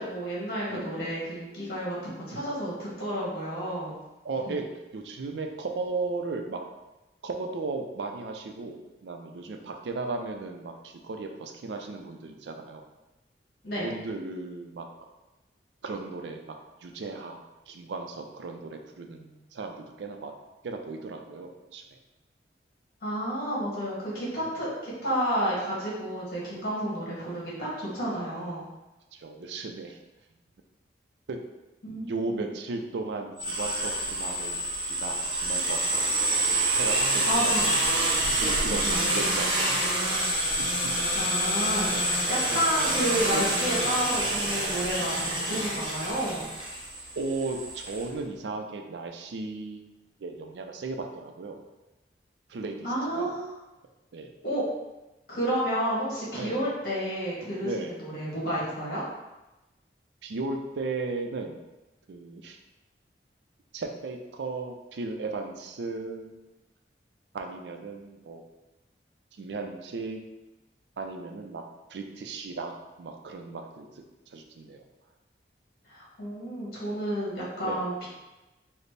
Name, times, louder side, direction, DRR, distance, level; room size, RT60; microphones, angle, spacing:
voice 1, 0.0-3.9 4.5-4.6 13.6-13.9 23.0-28.6 31.8-32.5 37.3-37.6 41.1-46.5 52.8-53.5 54.4-54.6 55.3-59.0 75.9-78.1, equal, 55° left, -7 dB, 1.5 m, -31 dB
voice 2, 4.2-4.6 4.9-6.6 7.2-12.8 13.8-14.9 15.8-16.6 16.8-20.3 20.6-21.8 24.4-24.5 29.1-30.0 31.3-31.4 32.0-36.0 36.8-37.7 38.4-40.3 41.9-42.0 42.5-42.6 43.3-43.6 47.2-49.8 50.2-51.6 52.5-52.9 53.1-53.3 54.1-54.3 56.4-56.6 57.6-58.0 60.2-61.6 62.1-62.6 63.7-66.4 67.3-68.4 69.4-70.2 71.0-71.6 71.9-72.7 73.0-74.0 74.3-74.8 77.6-77.8, right 3 dB, 80° right, 4 dB, 0.4 m, -36 dB
sound 1, 33.4-48.0, right 1 dB, 25° right, 0.6 m, -27 dB
4.1 x 2.0 x 3.3 m, 1.0 s
head